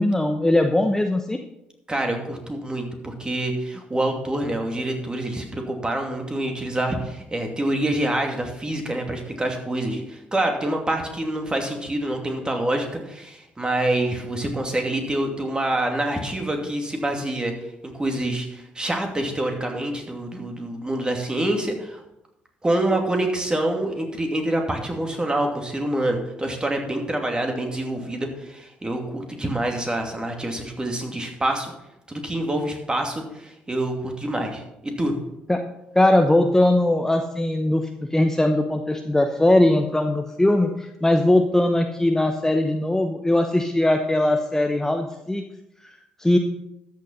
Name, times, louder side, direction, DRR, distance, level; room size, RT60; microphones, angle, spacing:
voice 1, 0.0-1.4 35.5-35.6 35.9-45.4 45.8-45.9 46.2-46.4, left 1 dB, 10° left, 5 dB, 1.0 m, -20 dB
voice 2, 1.9-17.5 18.0-22.0 22.6-31.7 32.1-35.1, right 1 dB, 20° right, 3 dB, 2.6 m, -26 dB
13.5 x 6.6 x 5.6 m, 0.89 s
hypercardioid pair, 50°, 4 cm